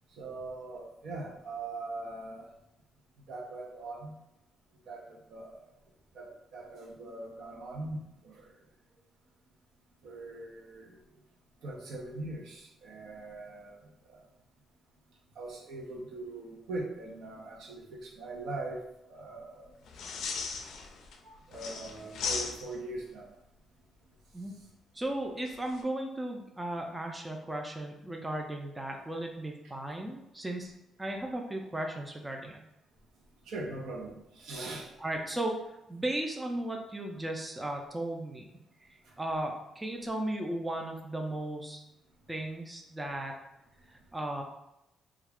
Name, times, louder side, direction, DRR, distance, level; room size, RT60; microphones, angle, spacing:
voice 1, 0.2-2.5 3.3-4.1 4.9-5.5 6.1-8.5 10.0-11.0 11.6-13.8 14.1-14.2 15.4-19.7 21.2-23.3 33.5-34.9, right 2 dB, 75° right, -1 dB, 0.6 m, -41 dB
sound 1, 19.9-21.2 21.5-23.0 25.4-25.8, left 5 dB, 75° left, 0.4 m, -37 dB
voice 2, 24.9-30.7 31.0-32.6 35.0-35.6 35.9-41.8 42.3-43.4 43.9-44.4, right 1 dB, 15° right, 2 dB, 0.4 m, -36 dB
2.3 x 2.3 x 3.5 m, 0.86 s
cardioid pair, 90°, 0 cm